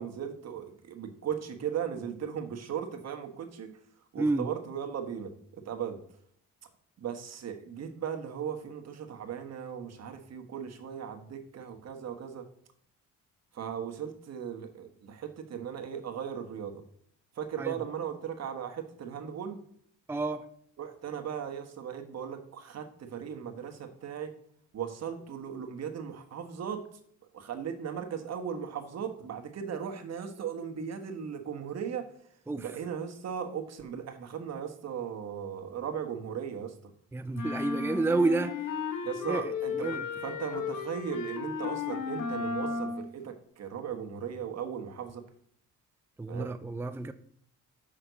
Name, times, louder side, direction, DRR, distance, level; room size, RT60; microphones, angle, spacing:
voice 1, 0.0-3.7 4.1-6.0 7.0-12.4 13.5-16.8 17.4-19.6 20.8-24.3 24.7-26.8 27.3-32.1 32.6-36.7 39.0-45.2 46.3-46.6, right 8 dB, 60° right, 1.5 m, -37 dB
voice 2, 4.2-4.5 17.6-17.8 20.1-20.5 32.5-32.7 37.1-38.8 39.3-40.0 46.2-47.1, right 2 dB, 10° right, 0.5 m, -30 dB
sound 1, 37.3-43.1, left 5 dB, 80° left, 1.3 m, -34 dB
6.4 x 5.6 x 6.9 m
cardioid pair, 90°, 30 cm